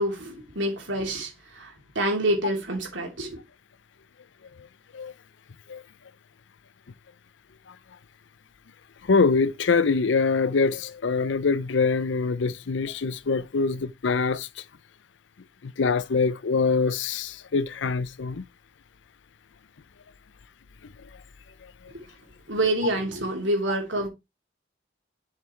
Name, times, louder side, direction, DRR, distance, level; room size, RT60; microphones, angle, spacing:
voice 1, 0.0-3.4 21.9-22.1 22.5-24.1, right 1 dB, 80° right, 3.1 m, -27 dB
voice 2, 9.1-14.5 15.6-18.4, left 4 dB, 75° left, 0.5 m, -24 dB
7.5 x 5.9 x 3.3 m
head